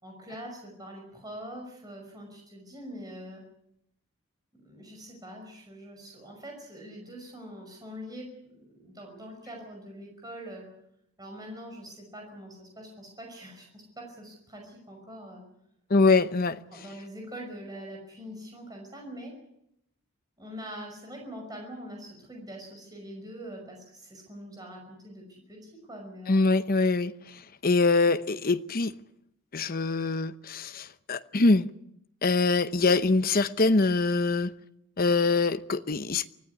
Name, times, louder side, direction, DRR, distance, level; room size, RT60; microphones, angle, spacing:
voice 1, 0.0-3.4 4.5-8.3 8.7-10.7 11.2-15.4 16.7-19.3 20.4-26.5, equal, 15° right, 5.6 m, -43 dB
voice 2, 15.9-16.6 26.3-27.1 27.6-28.9 29.5-31.7 32.2-34.5 35.0-36.3, left 3 dB, 40° left, 0.8 m, -24 dB
24.5 x 15.0 x 9.8 m
head